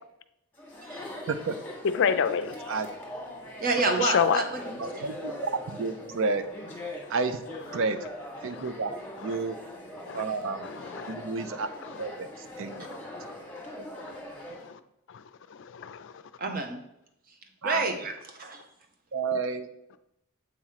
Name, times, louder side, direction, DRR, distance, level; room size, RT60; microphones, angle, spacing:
Chatter, 0.5-14.7, left 1 dB, 10° left, 1.4 m, -41 dB
voice 1, 1.8-2.5 4.0-4.4 8.5-8.7 9.2-9.4 10.1-10.2 10.6-11.1 11.8-12.1 12.7-13.0 14.0-14.2 14.5-14.8 15.1-15.2 15.5-16.1, left 7 dB, 55° left, 11 dB, 0.4 m, -29 dB
voice 2, 3.6-5.1 16.4-16.8 17.6-18.6, right 3 dB, 40° right, 4 dB, 0.9 m, -29 dB
voice 3, 4.8-5.3 5.7-6.4 7.1-7.4 7.7-8.0 8.4-9.0 9.2-9.6 10.1-10.6 11.1-11.7 12.0-12.3 12.6-12.7 13.8-13.9 17.6-17.9 19.1-19.7, right 4 dB, 60° right, 10 dB, 0.5 m, -30 dB
7.6 x 3.0 x 5.6 m, 0.82 s
head